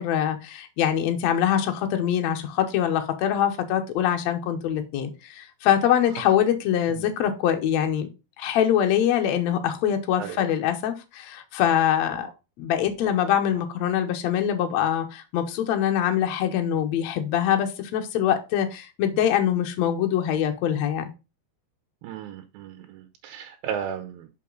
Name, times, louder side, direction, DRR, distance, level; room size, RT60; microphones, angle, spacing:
voice 1, 0.0-8.1 8.4-12.3 12.6-21.1, left 10 dB, 75° left, 1.6 m, -24 dB
voice 2, 22.0-24.3, right 8 dB, 80° right, 2.5 m, -35 dB
6.3 x 5.4 x 3.8 m
omnidirectional pair, 4.4 m